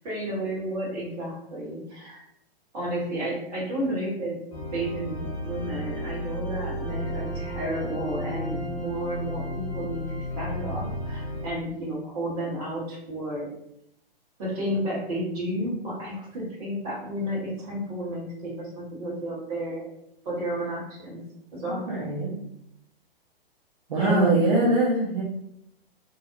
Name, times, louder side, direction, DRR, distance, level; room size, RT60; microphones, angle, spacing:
voice 1, 0.0-2.2 2.7-4.4 4.7-13.5 14.4-19.9 20.2-21.2 21.5-21.8 23.9-24.4, equal, 40° right, -5 dB, 1.2 m, -32 dB
sound 1, 4.5-11.5, equal, 25° left, 0.6 m, -33 dB
voice 2, 21.9-22.4 23.9-25.2, right 2 dB, 55° right, -5 dB, 0.8 m, -22 dB
2.6 x 2.0 x 2.5 m, 0.78 s
figure-of-eight pair, 115°, 30 cm